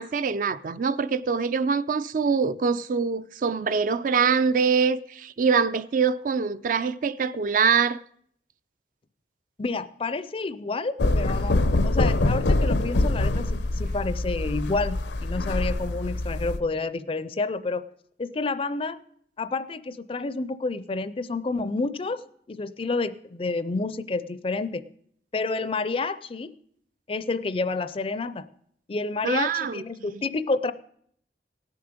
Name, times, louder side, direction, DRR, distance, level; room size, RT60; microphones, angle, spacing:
voice 1, 0.0-8.0 29.2-29.8, right 5 dB, 50° right, 0.4 m, -24 dB
voice 2, 9.6-17.8 18.2-19.0 19.4-22.2 22.5-24.8 25.3-26.5 27.1-28.5 28.9-30.7, left 3 dB, 30° left, 0.4 m, -29 dB
sound 1, 11.0-16.6, left 2 dB, 80° left, 0.6 m, -24 dB
18.0 x 6.8 x 5.1 m
head